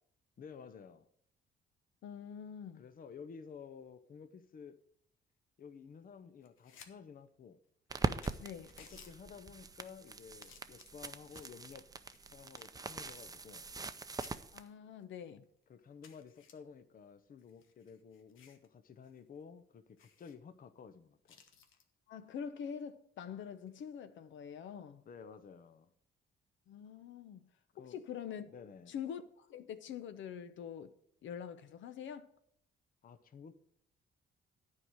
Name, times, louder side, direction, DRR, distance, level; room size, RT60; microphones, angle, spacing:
voice 1, 0.4-1.1 2.7-4.8 5.6-7.6 8.8-11.9 12.3-13.7 15.7-21.4 25.1-25.9 27.7-28.0 28.5-28.9 33.0-33.5, left 6 dB, 45° left, 0.7 m, -53 dB
voice 2, 2.0-2.8 8.4-8.7 14.5-15.5 22.1-25.0 26.7-27.5 27.8-28.5 28.9-30.9 31.2-32.3, left 8 dB, 75° left, 0.8 m, -45 dB
sound 1, 6.4-6.9 7.3-7.4 7.9-8.0 8.2-9.1 9.8-10.1 10.4-11.6 12.1-14.0 14.2-14.4 15.0-15.1 15.4-15.5 16.0-16.5 17.4-18.7 19.0-19.2 19.5-19.6 20.0-20.4 21.3-21.8 23.6-23.8, left 7 dB, 90° left, 1.2 m, -59 dB
sound 2, 7.9-14.6, right 3 dB, 20° right, 0.6 m, -42 dB
9.8 x 4.8 x 7.4 m
cardioid pair, 90°, 20 cm